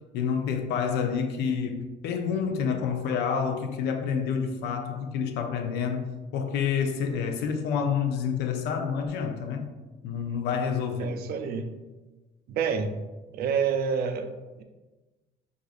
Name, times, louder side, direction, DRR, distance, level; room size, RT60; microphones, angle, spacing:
voice 1, 0.1-9.7 10.0-11.2, left 6 dB, 80° left, 0.5 m, -28 dB
voice 2, 11.0-11.7 12.5-12.9 13.3-14.6, right 6 dB, 65° right, 0.4 m, -28 dB
4.7 x 2.5 x 2.4 m
cardioid pair, 110°, 17 cm